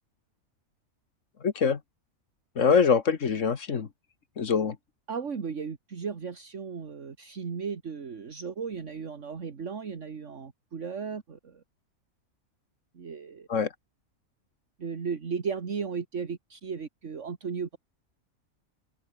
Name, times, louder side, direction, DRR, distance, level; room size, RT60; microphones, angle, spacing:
voice 1, 1.4-1.8 2.5-3.9 4.4-4.8 13.5-13.7, left 6 dB, 60° left, 1.8 m, -24 dB
voice 2, 5.1-11.6 12.9-13.5 14.8-17.8, right 6 dB, 55° right, 2.0 m, -35 dB
omnidirectional pair, 1.5 m